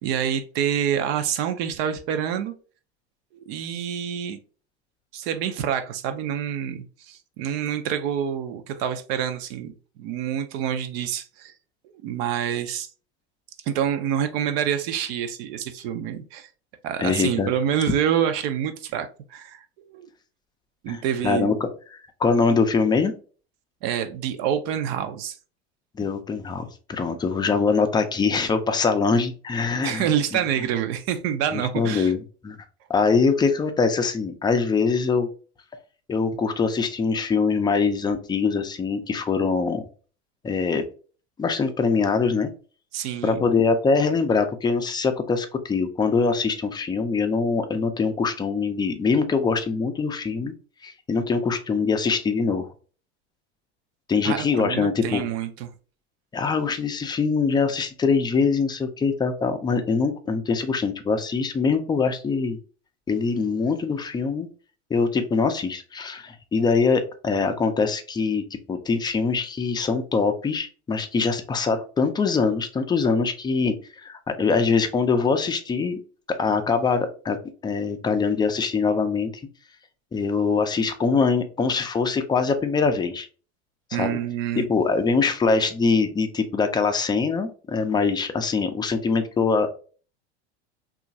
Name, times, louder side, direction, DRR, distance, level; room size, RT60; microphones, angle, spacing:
voice 1, 0.0-2.5 3.3-4.4 5.1-11.5 11.8-12.9 13.7-16.5 16.8-20.1 20.8-21.5 23.8-25.4 29.8-32.1 42.9-43.4 54.2-55.7 83.9-84.7, right 9 dB, 60° right, 9 dB, 0.6 m, -27 dB
voice 2, 17.0-17.5 17.8-17.9 20.9-23.1 26.0-30.4 31.5-32.6 32.9-35.3 36.1-39.8 40.4-40.8 41.4-42.5 43.2-50.5 50.8-52.7 54.1-55.2 56.3-62.6 63.1-64.5 64.9-68.4 68.7-73.8 74.0-76.0 76.4-77.4 77.6-79.3 80.1-83.3 83.9-84.2 84.6-89.7, left 4 dB, 15° left, 7 dB, 0.4 m, -23 dB
2.9 x 2.4 x 2.6 m, 0.38 s
hypercardioid pair, 95°, 34 cm